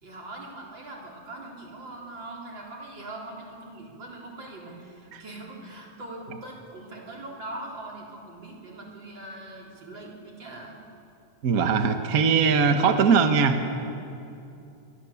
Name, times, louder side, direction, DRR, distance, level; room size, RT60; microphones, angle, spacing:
voice 1, 0.0-10.8, right 2 dB, 40° right, -1 dB, 4.3 m, -41 dB
voice 2, 11.4-13.8, right 5 dB, 55° right, 6 dB, 0.9 m, -21 dB
26.0 x 23.0 x 7.1 m, 2.7 s
omnidirectional pair, 3.4 m